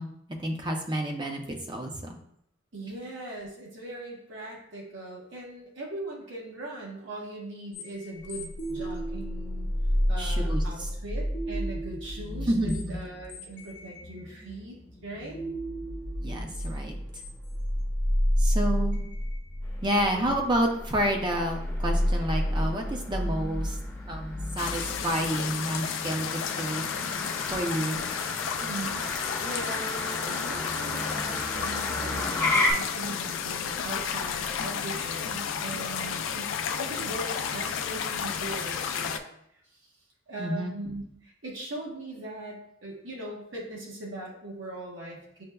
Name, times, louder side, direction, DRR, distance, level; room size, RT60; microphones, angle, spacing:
voice 1, 0.0-2.2 10.2-10.9 12.5-12.9 16.2-17.0 18.4-19.0 19.8-23.8 24.1-26.9 27.5-28.0 40.4-40.7, right 1 dB, 25° right, 3 dB, 0.5 m, -29 dB
voice 2, 2.7-9.7 10.1-15.4 28.6-39.2 39.5-39.6 40.3-45.4, right 1 dB, 85° right, -3 dB, 1.0 m, -40 dB
sound 1, 7.7-26.1, equal, 65° left, 0.7 m, -31 dB
Motor vehicle (road), 19.6-32.7, left 2 dB, 15° left, 0.7 m, -34 dB
sound 2, 24.6-39.2, left 7 dB, 85° left, 0.3 m, -32 dB
6.4 x 2.2 x 2.2 m, 0.73 s
head